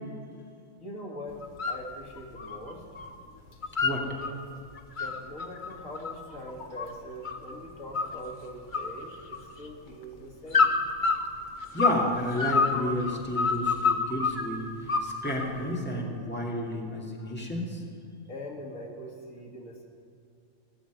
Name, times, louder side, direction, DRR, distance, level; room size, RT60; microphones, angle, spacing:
voice 1, 0.8-2.9 5.0-10.7 17.1-17.4 18.3-19.8, equal, 75° left, -1 dB, 2.4 m, -42 dB
sound 1, 1.4-1.8 2.2-3.1 3.4-4.3 4.8-7.5 7.9-8.4 8.7-9.7 10.5-12.0 12.4-14.4 14.9-15.6, left 4 dB, 40° left, 1.2 m, -27 dB
voice 2, 11.7-14.6 15.0-17.8, left 1 dB, 10° left, -2 dB, 2.2 m, -31 dB
17.5 x 7.3 x 9.2 m, 2.5 s
omnidirectional pair, 1.4 m